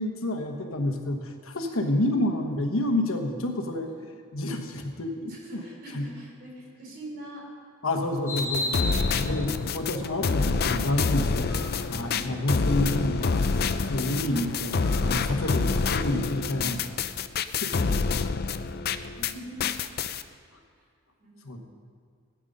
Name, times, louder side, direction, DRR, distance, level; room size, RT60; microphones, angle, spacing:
voice 1, 0.0-3.9 4.3-5.6 5.9-6.1 7.8-8.8 9.2-11.5 11.9-13.4 13.9-16.8 17.4-17.9 21.4-21.6, left 1 dB, 65° left, 4 dB, 1.2 m, -29 dB
voice 2, 5.3-7.4 8.4-8.5 12.0-12.3 19.1-19.7 21.2-21.6, right 1 dB, 45° right, -2 dB, 4.1 m, -43 dB
sound 1, 8.3-15.5, left 2 dB, 10° left, 2.9 m, -38 dB
sound 2, 8.4-19.3 19.6-20.2, left 4 dB, 45° left, 0.5 m, -27 dB
sound 3, 11.5-11.9 14.8-15.2, right 3 dB, 75° right, 1.7 m, -47 dB
16.5 x 9.2 x 5.4 m, 2.2 s
head